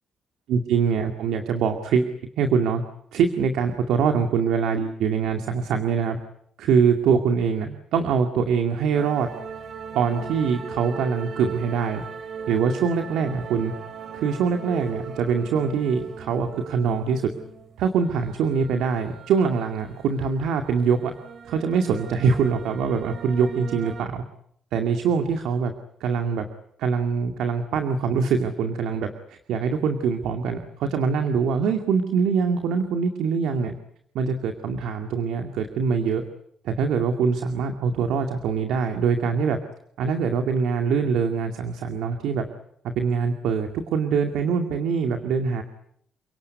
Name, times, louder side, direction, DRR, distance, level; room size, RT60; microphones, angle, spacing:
voice 1, 0.5-2.1 2.4-2.8 3.1-6.2 6.6-9.3 9.9-12.0 12.5-13.7 14.1-17.3 17.8-21.1 21.4-24.2 24.7-25.7 26.0-26.4 26.8-33.7 34.1-36.2 36.6-39.6 40.0-42.5 43.0-45.6, right 6 dB, 80° right, 6 dB, 2.3 m, -23 dB
sound 1, 8.9-24.0, right 6 dB, 60° right, 3.3 m, -39 dB
30.0 x 18.0 x 9.6 m, 0.70 s
cardioid pair, 75°, 0 cm